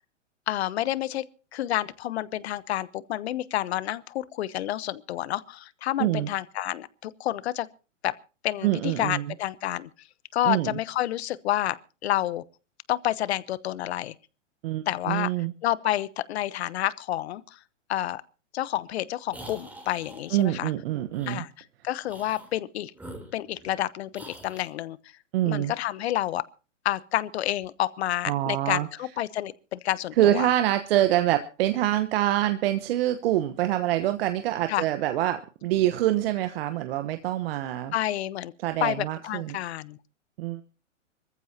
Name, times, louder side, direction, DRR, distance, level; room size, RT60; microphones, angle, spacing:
voice 1, 0.5-1.2 1.5-7.7 8.0-8.1 8.4-9.9 10.3-12.4 12.9-14.1 14.9-15.3 15.6-17.6 17.9-18.2 18.5-20.7 21.3-21.5 21.8-22.9 23.3-25.0 25.5-26.4 26.8-30.5 34.7-34.8 37.9-38.5 38.8-40.0, left 13 dB, 55° left, 1.0 m, -29 dB
voice 2, 6.0-6.3 8.6-9.2 10.4-10.8 14.6-15.5 20.3-21.4 25.3-25.7 28.3-28.9 30.2-37.9 38.6-39.6 40.4-40.6, right 13 dB, 50° right, 1.2 m, -25 dB
sound 1, 19.3-20.5 21.1-21.4 22.0-22.5 22.9-23.8 24.1-24.7, right 1 dB, 5° right, 3.4 m, -45 dB
25.5 x 14.5 x 2.8 m
hypercardioid pair, 125°, 37 cm